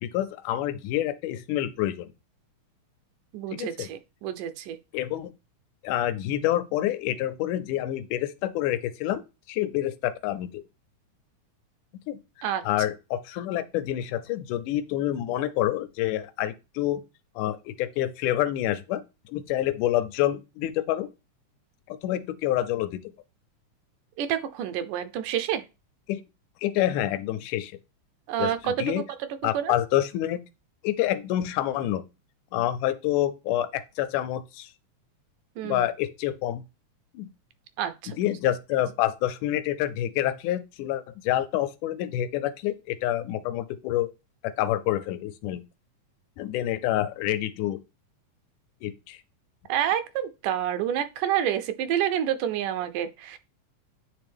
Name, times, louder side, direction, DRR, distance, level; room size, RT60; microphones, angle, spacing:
voice 1, 0.0-2.1 3.5-3.9 4.9-5.3 5.8-9.2 9.5-10.6 12.1-12.2 12.6-17.0 17.4-19.0 19.3-21.1 21.9-23.0 26.1-26.2 26.6-27.7 28.4-29.0 29.4-30.4 30.8-32.0 32.5-34.7 35.6-36.6 37.1-37.3 38.2-44.1 44.4-45.6 46.4-47.8 48.8-49.2, left 13 dB, 80° left, 2.1 m, -27 dB
voice 2, 3.3-4.8 12.4-12.6 24.2-25.6 28.3-28.9 29.5-29.7 35.6-35.9 37.8-38.2 49.7-53.4, right 10 dB, 85° right, 2.2 m, -28 dB
8.8 x 3.4 x 3.4 m
omnidirectional pair, 3.6 m